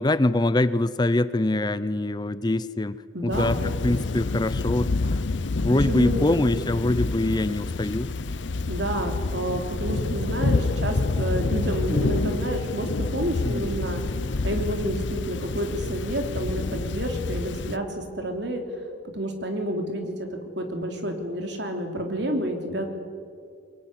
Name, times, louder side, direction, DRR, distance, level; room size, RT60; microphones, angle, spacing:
voice 1, 0.0-3.0 3.2-5.2 5.6-8.1 13.4-13.7, left 1 dB, 20° left, 15 dB, 0.5 m, -24 dB
voice 2, 3.1-3.5 5.9-6.3 8.7-14.0 14.4-18.6 19.1-22.8, right 1 dB, 60° right, 4 dB, 3.4 m, -29 dB
Thunder / Rain, 3.3-17.8, left 3 dB, 70° left, 0.7 m, -28 dB
23.0 x 21.0 x 9.8 m, 2.3 s
head